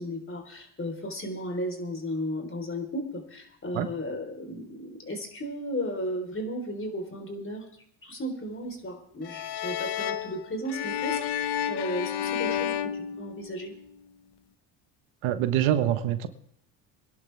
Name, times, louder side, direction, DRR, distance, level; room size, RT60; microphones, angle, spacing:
voice 1, 0.0-7.7 8.0-13.7, equal, 25° left, 5 dB, 3.9 m, -35 dB
sound 1, 9.2-13.9, left 9 dB, 55° left, 0.9 m, -31 dB
voice 2, 15.2-16.3, right 11 dB, 75° right, 9 dB, 1.4 m, -25 dB
23.5 x 11.0 x 3.4 m, 0.68 s
supercardioid pair, 80°, 48 cm